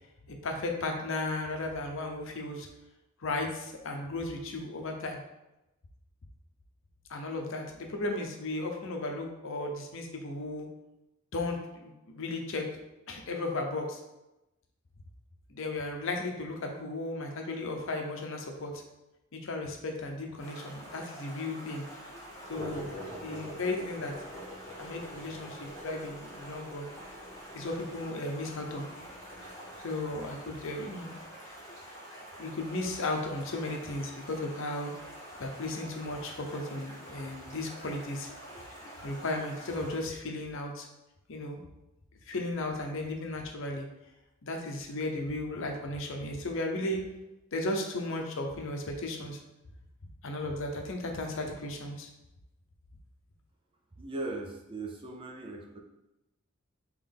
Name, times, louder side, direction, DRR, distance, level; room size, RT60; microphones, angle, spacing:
voice 1, 0.3-2.7 3.2-5.2 7.1-10.7 11.3-12.6 13.1-14.0 15.5-18.7 19.3-21.8 22.5-24.1 24.8-26.9 27.5-28.8 29.8-31.1 32.4-34.9 35.4-38.3 39.0-40.9 41.3-41.6 42.3-43.8 44.4-47.0 47.5-49.4 50.2-52.1, left 2 dB, 60° left, 2 dB, 0.6 m, -35 dB
Stream, 20.4-40.0, equal, 15° left, 1.5 m, -47 dB
sound 1, 22.2-31.3, equal, 35° left, 1.3 m, -46 dB
voice 2, 54.0-55.8, right 2 dB, 25° right, 1 dB, 0.4 m, -38 dB
3.8 x 3.0 x 3.5 m, 0.94 s
head